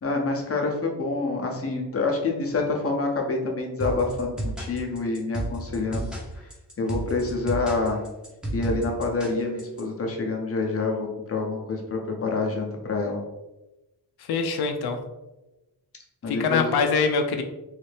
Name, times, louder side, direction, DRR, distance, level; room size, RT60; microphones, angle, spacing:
voice 1, 0.0-6.1 6.8-8.0 8.5-13.2 16.2-16.7, left 3 dB, 35° left, 1 dB, 0.7 m, -27 dB
sound 1, 3.8-9.8, right 1 dB, ahead, 0.7 m, -32 dB
voice 2, 14.2-15.0 16.2-17.4, left 5 dB, 70° left, 5 dB, 0.5 m, -24 dB
3.2 x 2.7 x 3.2 m, 1.0 s
wide cardioid pair, 150°, 39 cm